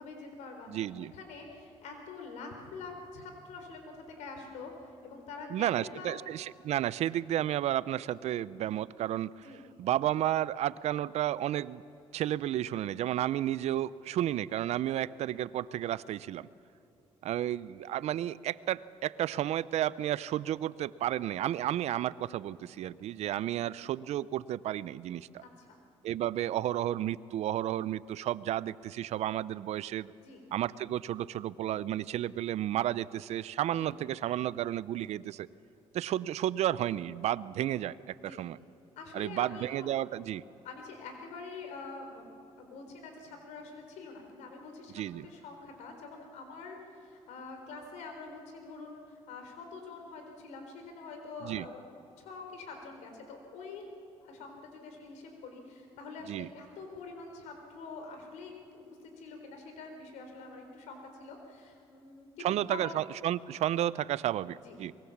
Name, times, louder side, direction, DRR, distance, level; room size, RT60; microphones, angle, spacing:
voice 1, 0.0-0.9 1.1-6.1 9.4-9.6 25.4-25.8 30.2-30.4 33.8-33.9 38.2-38.4 39.0-39.9 40.6-51.8 52.2-53.9 54.2-63.0 64.5-64.8, left 4 dB, 85° left, 4 dB, 4.3 m, -46 dB
voice 2, 0.7-1.1 5.5-9.5 9.8-11.8 12.1-16.5 17.2-25.4 26.0-30.1 30.5-35.5 35.9-38.6 39.1-40.4 44.9-45.3 51.4-51.6 56.3-56.5 62.4-64.9, right 12 dB, 70° right, 18 dB, 0.6 m, -32 dB
23.5 x 22.0 x 7.3 m, 2.7 s
cardioid pair, 85°, 12 cm